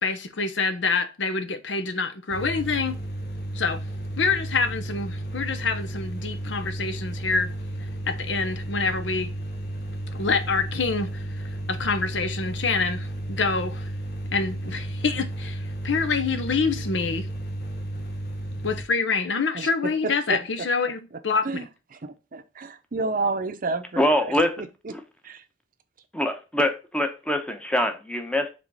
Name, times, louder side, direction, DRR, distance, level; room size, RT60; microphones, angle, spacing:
voice 1, 0.0-3.0 3.5-3.8 4.2-7.5 8.1-9.3 10.1-13.9 14.3-17.3 18.6-21.5, left 4 dB, 75° left, 0.8 m, -26 dB
sound 1, 2.3-18.8, right 1 dB, 60° left, 1.3 m, -33 dB
voice 2, 21.4-24.7 25.2-25.4, right 3 dB, 50° right, 0.6 m, -30 dB
voice 3, 24.0-24.5 24.9-25.0 26.1-28.5, left 1 dB, 5° left, 0.9 m, -24 dB
5.1 x 3.5 x 5.4 m
head